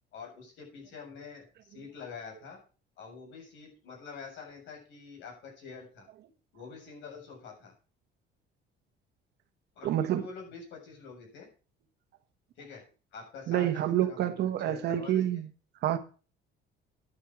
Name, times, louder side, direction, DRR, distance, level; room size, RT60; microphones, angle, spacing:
voice 1, 0.1-2.6 3.0-6.1 6.5-7.7 9.8-11.5 12.6-12.8 13.1-15.4, left 5 dB, 75° left, 7.3 m, -46 dB
voice 2, 9.8-10.3 13.5-15.5 15.8-16.0, right 11 dB, 60° right, 1.3 m, -28 dB
11.0 x 8.1 x 6.2 m
cardioid pair, 165°, 20 cm